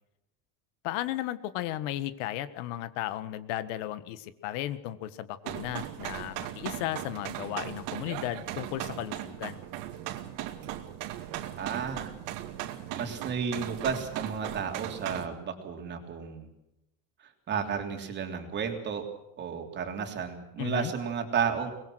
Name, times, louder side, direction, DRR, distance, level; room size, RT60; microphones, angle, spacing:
voice 1, 0.8-9.6 20.6-20.9, left 13 dB, 80° left, 13 dB, 1.6 m, -35 dB
sound 1, 5.4-15.3, right 12 dB, 60° right, 2.3 m, -38 dB
voice 2, 11.6-12.1 12.9-16.5 17.5-19.0 19.4-21.7, right 6 dB, 30° right, 4 dB, 3.2 m, -32 dB
24.0 x 21.0 x 6.3 m, 0.85 s
cardioid pair, 170°, 37 cm